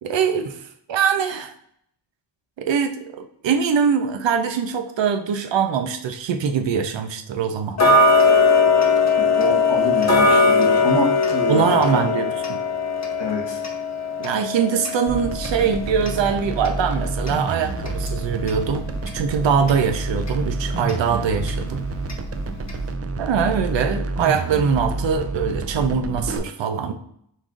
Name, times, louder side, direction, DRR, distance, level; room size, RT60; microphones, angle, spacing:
voice 1, 0.0-1.5 2.6-7.8 11.5-12.6 14.2-18.9 19.1-21.8 23.2-26.9, right 6 dB, 85° right, 6 dB, 0.5 m, -22 dB
Tick-tock, 7.8-18.6 19.0-19.1 19.7-19.8 20.3-20.4 20.9-21.0 21.5-21.6 22.1-22.2 22.7-22.8, left 3 dB, 40° left, 0.8 m, -20 dB
voice 2, 9.2-11.6 11.9-12.0 13.2-13.6, left 2 dB, 75° left, -2 dB, 1.2 m, -26 dB
sound 1, 15.1-26.4, right 3 dB, 35° right, 0.4 m, -28 dB
5.3 x 2.5 x 3.7 m, 0.68 s
wide cardioid pair, 105°, 44 cm